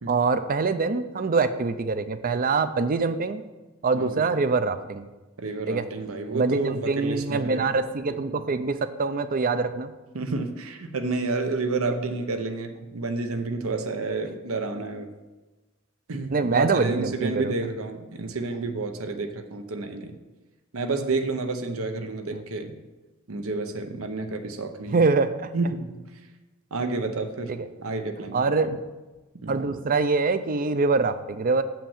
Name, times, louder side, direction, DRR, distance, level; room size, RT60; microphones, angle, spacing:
voice 1, 0.1-3.4 3.8-5.1 5.7-5.8 6.3-9.9 16.3-17.5 22.3-22.4 24.9-25.5 27.5-27.6 28.3-28.8 29.5-31.6, right 4 dB, 40° right, 11 dB, 0.5 m, -24 dB
voice 2, 5.4-7.6 10.1-15.1 16.1-20.2 20.7-22.8 23.3-25.0 25.5-26.2 26.7-28.4 29.3-29.6, right 3 dB, 80° right, 7 dB, 0.8 m, -30 dB
7.2 x 5.9 x 7.1 m, 1.2 s
head